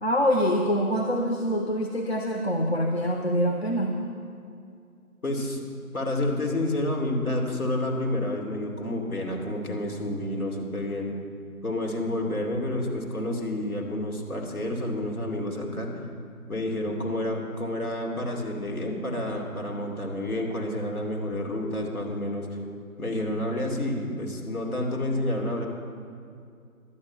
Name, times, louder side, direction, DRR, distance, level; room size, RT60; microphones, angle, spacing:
voice 1, 0.0-4.0, equal, 45° left, 2 dB, 0.7 m, -25 dB
voice 2, 5.2-5.6 5.9-11.1 11.6-16.0 16.5-22.5 23.0-25.7, left 1 dB, 70° left, 0 dB, 2.7 m, -29 dB
11.5 x 9.0 x 5.9 m, 2.4 s
figure-of-eight pair, 160°, 45 cm